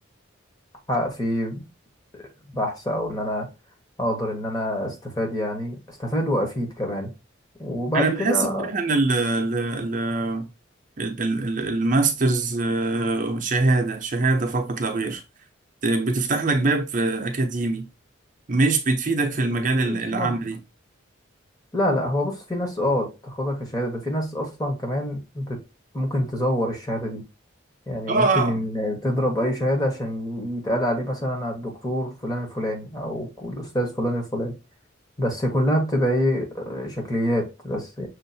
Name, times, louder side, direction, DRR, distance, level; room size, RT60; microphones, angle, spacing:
voice 1, 0.9-1.6 2.5-3.5 4.0-7.1 7.6-8.7 19.4-19.5 19.8-20.3 21.7-25.6 25.9-27.2 27.9-34.5 35.2-38.1, equal, 20° left, 1.1 m, -26 dB
voice 2, 7.9-10.5 11.0-15.2 15.8-17.8 18.5-20.6 28.1-28.6, right 3 dB, 40° right, 0.6 m, -23 dB
6.2 x 2.5 x 2.6 m
head